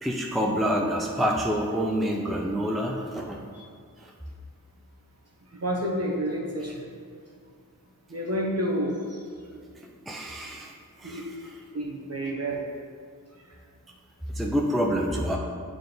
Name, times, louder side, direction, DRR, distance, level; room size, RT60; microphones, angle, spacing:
voice 1, 0.0-3.4 4.0-4.1 10.1-10.7 11.0-11.2 14.3-15.4, equal, ahead, 0 dB, 0.5 m, -27 dB
voice 2, 5.5-6.8 8.1-9.2 11.0-11.3 11.7-12.6, equal, 45° right, -2 dB, 1.2 m, -29 dB
8.6 x 3.8 x 3.9 m, 2.1 s
wide cardioid pair, 65°, 35 cm